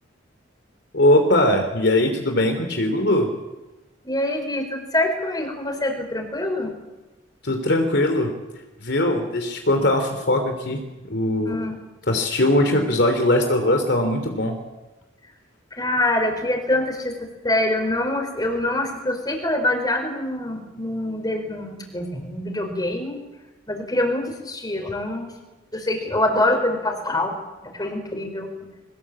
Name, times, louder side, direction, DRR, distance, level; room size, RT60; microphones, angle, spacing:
voice 1, 0.9-3.3 7.4-8.3 8.8-11.6 12.1-14.5, left 1 dB, 60° left, 5 dB, 3.2 m, -20 dB
voice 2, 4.0-6.7 11.5-11.7 15.8-17.1 17.4-23.2 23.7-25.3 25.7-27.3 27.7-28.5, left 1 dB, 20° left, 4 dB, 4.7 m, -25 dB
22.5 x 20.0 x 8.7 m, 1.1 s
head